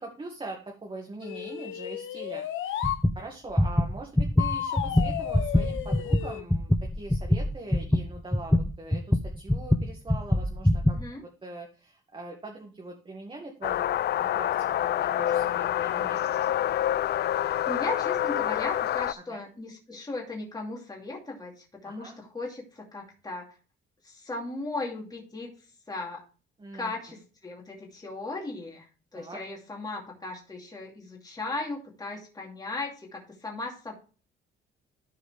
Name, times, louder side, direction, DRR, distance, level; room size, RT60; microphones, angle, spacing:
voice 1, 0.0-11.0 11.4-14.5 15.0-16.2 19.3-19.4 21.8-22.2 26.6-26.9 29.1-29.4, right 2 dB, 25° right, 1 dB, 1.9 m, -42 dB
sound 1, 1.2-3.0 4.4-6.4, left 11 dB, 75° left, 1.0 m, -33 dB
sound 2, 2.8-3.2 3.5-11.0, left 1 dB, 5° left, 0.5 m, -24 dB
voice 2, 10.9-11.2 17.4-23.5 24.0-25.5 25.9-26.2 26.7-33.9, left 2 dB, 20° left, -2 dB, 2.6 m, -37 dB
sound 3, 13.6-19.1, left 11 dB, 55° left, 0.4 m, -27 dB
13.5 x 4.8 x 3.4 m, 0.36 s
cardioid pair, 90°, 20 cm